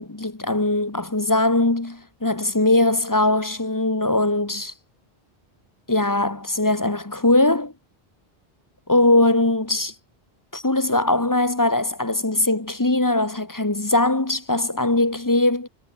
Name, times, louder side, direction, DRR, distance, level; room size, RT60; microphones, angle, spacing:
voice 1, 0.0-4.7 5.9-7.7 8.9-9.9 10.5-15.7, left 2 dB, 20° left, 1.1 m, -21 dB
omnidirectional pair, 1.0 m